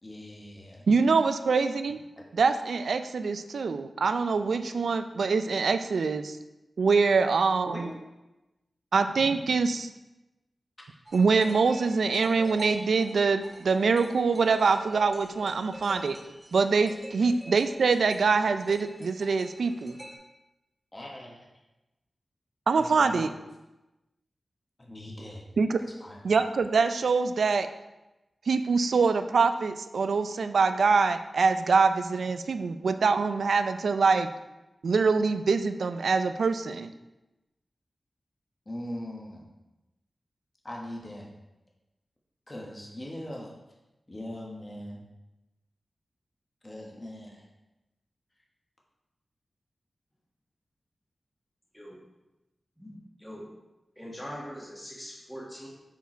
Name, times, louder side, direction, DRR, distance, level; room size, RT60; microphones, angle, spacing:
voice 1, 0.0-0.8 2.2-2.3 7.6-7.9 20.9-21.5 22.8-23.3 24.8-25.4 26.0-26.2 38.6-39.4 40.6-41.3 42.5-43.5 44.1-45.0 46.6-47.4, left 1 dB, 25° left, -2 dB, 1.5 m, -40 dB
voice 2, 0.9-2.0 2.4-6.4 6.8-7.9 8.9-9.9 11.1-16.2 16.5-20.0 22.7-23.3 25.6-25.8 26.2-27.7 28.5-34.3 34.8-36.9, right 4 dB, 85° right, 10 dB, 0.4 m, -24 dB
sound 1, 11.1-20.2, right 1 dB, 20° right, 0.9 m, -47 dB
voice 3, 52.8-53.5 53.9-55.7, equal, 5° left, -5 dB, 1.6 m, -42 dB
7.1 x 4.7 x 4.5 m, 1.0 s
wide cardioid pair, 95°, 0 cm